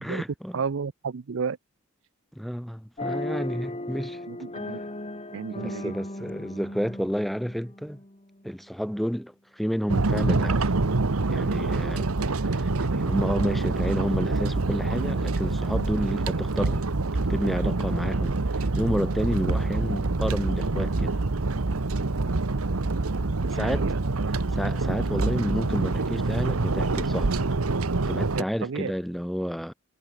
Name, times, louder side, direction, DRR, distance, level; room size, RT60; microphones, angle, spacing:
voice 1, 0.0-0.6 2.4-4.2 5.5-8.0 8.4-10.7 11.2-12.1 12.5-16.9 17.3-21.2 23.5-23.9 24.5-27.3 28.1-29.7, equal, ahead, 1.2 m, -30 dB
voice 2, 0.5-1.6 4.3-4.8 5.3-5.9 23.4-24.3 28.4-28.9, right 5 dB, 60° right, 0.5 m, -33 dB
sound 1, 3.0-8.4, left 1 dB, 30° left, 2.4 m, -36 dB
sound 2, 9.9-28.4, right 3 dB, 85° right, 1.1 m, -26 dB
head